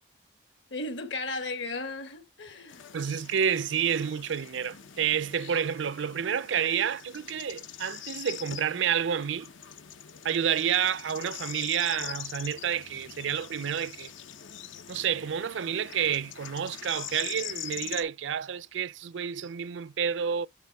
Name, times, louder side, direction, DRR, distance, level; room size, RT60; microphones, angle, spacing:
voice 1, 0.7-2.9, left 2 dB, 70° left, 1.7 m, -35 dB
sound 1, 2.7-18.0, left 9 dB, 90° left, 0.8 m, -43 dB
voice 2, 2.9-9.5 10.2-14.1 14.9-20.5, right 8 dB, 75° right, 0.4 m, -29 dB
9.4 x 3.6 x 3.5 m
head